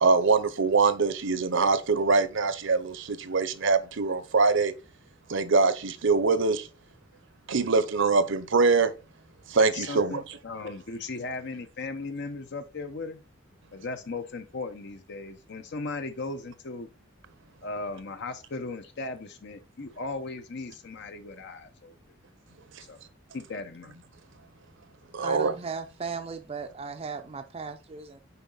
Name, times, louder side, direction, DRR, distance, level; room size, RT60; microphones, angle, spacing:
voice 1, 0.0-4.7 5.3-6.7 7.5-8.9 9.5-10.2 25.1-25.5, right 4 dB, 65° right, 0.8 m, -23 dB
voice 2, 9.6-13.2 13.7-16.9 17.6-21.9 22.9-23.0 23.3-23.9, left 3 dB, 60° left, 0.8 m, -37 dB
voice 3, 25.2-28.2, right 5 dB, 30° right, 0.5 m, -36 dB
6.9 x 4.8 x 4.0 m
head